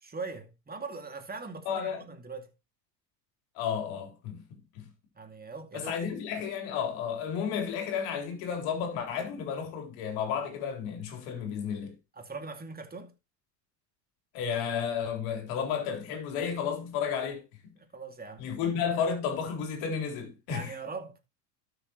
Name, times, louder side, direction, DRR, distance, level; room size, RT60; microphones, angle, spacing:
voice 1, 0.0-2.5 5.1-6.0 12.2-13.1 17.9-18.5 20.5-21.2, right 4 dB, 20° right, 2.4 m, -41 dB
voice 2, 1.7-2.0 3.6-4.9 5.7-11.9 14.3-17.7 18.4-20.7, left 7 dB, 70° left, 4.0 m, -32 dB
12.5 x 6.9 x 3.1 m
hypercardioid pair, 85°, 50 cm